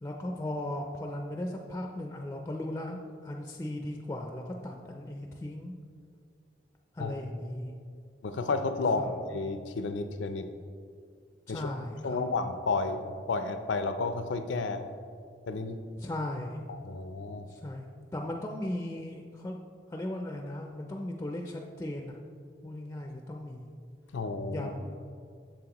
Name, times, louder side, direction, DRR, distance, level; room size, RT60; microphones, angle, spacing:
voice 1, 0.0-5.7 6.9-7.8 9.0-9.1 11.5-12.2 16.0-16.7 17.5-17.8 18.1-19.6 19.9-22.2 22.6-23.7 24.5-25.0, left 1 dB, 15° left, 2 dB, 0.3 m, -37 dB
voice 2, 8.2-10.5 11.5-11.7 12.0-14.9 15.5-15.8 16.7-17.5 24.1-24.7, left 3 dB, 90° left, 9 dB, 0.5 m, -31 dB
7.4 x 7.0 x 2.9 m, 2.2 s
head